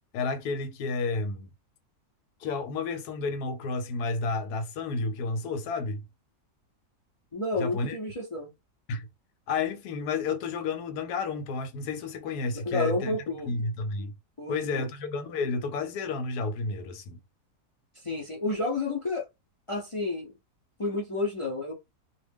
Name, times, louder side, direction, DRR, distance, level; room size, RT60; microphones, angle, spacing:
voice 1, 0.1-1.5 2.4-6.0 7.6-8.0 8.9-9.1 9.5-14.1 14.5-17.2, left 4 dB, 90° left, 1.1 m, -31 dB
voice 2, 7.3-8.5 12.7-13.5 14.4-14.9 17.9-19.3 19.7-20.3 20.8-21.7, left 2 dB, 40° left, 0.4 m, -31 dB
2.5 x 2.2 x 3.4 m
omnidirectional pair, 1.6 m